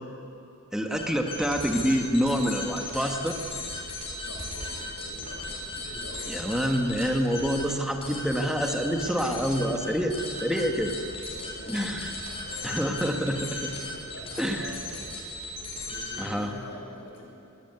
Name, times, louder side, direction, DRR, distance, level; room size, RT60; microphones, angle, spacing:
voice 1, 0.7-3.4 6.3-10.9 11.7-12.1 12.6-13.7 14.4-14.7 16.2-16.5, equal, 5° right, 2 dB, 1.5 m, -27 dB
sound 1, 0.9-16.4, left 2 dB, 25° left, 6.7 m, -37 dB
voice 2, 4.2-6.6 8.4-8.5 11.3-13.0 13.6-14.9 15.7-17.2, left 1 dB, 85° left, -1 dB, 6.7 m, -45 dB
22.5 x 17.0 x 9.6 m, 3.0 s
head